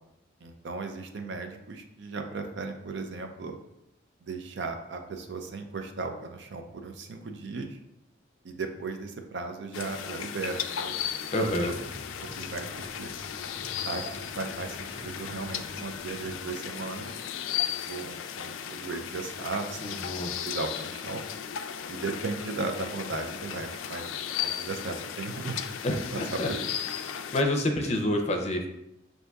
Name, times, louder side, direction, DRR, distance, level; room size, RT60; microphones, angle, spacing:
voice 1, 0.4-3.6 4.2-7.8 8.4-11.1 11.4-11.7 12.2-13.1 13.9-17.2 17.9-21.2 21.9-25.7 26.1-26.2 26.5-26.7, right 3 dB, 65° right, 5 dB, 0.5 m, -36 dB
Rain & Birds, 9.7-27.4, left 9 dB, 90° left, 0.3 m, -36 dB
voice 2, 11.3-11.8 19.8-20.5 25.8-26.5 27.0-28.7, left 1 dB, 35° left, 2 dB, 0.5 m, -28 dB
sound 1, 11.5-16.7, left 1 dB, 15° right, 1.0 m, -47 dB
6.4 x 2.7 x 2.3 m, 0.85 s
head